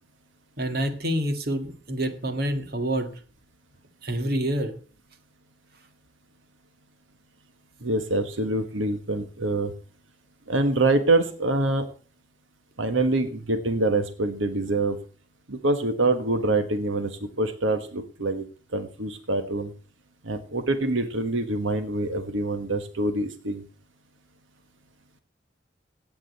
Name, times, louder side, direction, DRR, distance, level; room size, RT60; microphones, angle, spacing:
voice 1, 0.6-3.1 4.0-4.7, right 1 dB, 50° right, 8 dB, 1.8 m, -27 dB
voice 2, 7.8-9.7 10.5-11.9 12.8-15.0 15.5-18.5 18.7-19.7 20.2-23.6, right 2 dB, 80° right, 9 dB, 1.4 m, -25 dB
16.5 x 8.7 x 4.1 m, 0.39 s
head